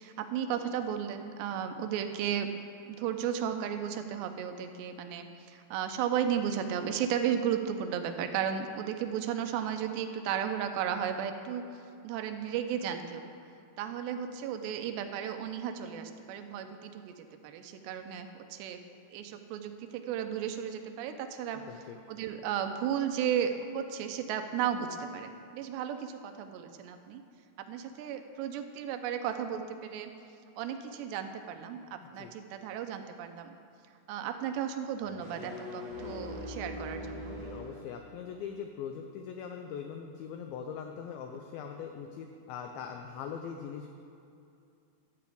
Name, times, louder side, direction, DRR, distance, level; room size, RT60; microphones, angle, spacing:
voice 1, 0.0-2.5 2.9-11.6 12.0-13.3 13.8-18.8 19.1-21.6 22.1-27.2 27.6-30.1 30.6-33.6 34.1-37.3, right 8 dB, 85° right, 7 dB, 2.8 m, -34 dB
voice 2, 21.5-22.0 32.2-32.3 37.3-43.9, left 7 dB, 85° left, 4 dB, 2.1 m, -41 dB
sound 1, 35.0-37.8, left 1 dB, 25° right, 0.9 m, -41 dB
12.5 x 5.9 x 8.3 m, 2.5 s
omnidirectional pair, 5.0 m